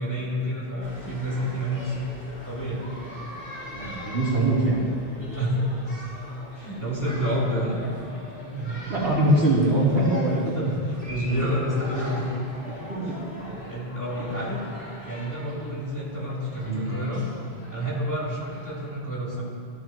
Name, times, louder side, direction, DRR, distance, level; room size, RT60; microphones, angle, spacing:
voice 1, 0.0-2.0 2.4-2.8 5.3-5.7 6.5-7.8 9.8-10.0 10.5-12.3 13.0-13.2 13.7-14.6 15.0-17.2 17.7-19.4, equal, 15° left, -8 dB, 3.3 m, -29 dB
sound 1, 0.8-18.7, equal, 60° left, 3.4 m, -42 dB
voice 2, 3.7-4.8 8.5-10.5 12.7-13.4 16.6-16.8, right 1 dB, 80° right, -8 dB, 3.9 m, -23 dB
17.5 x 13.0 x 3.1 m, 2.5 s
omnidirectional pair, 1.1 m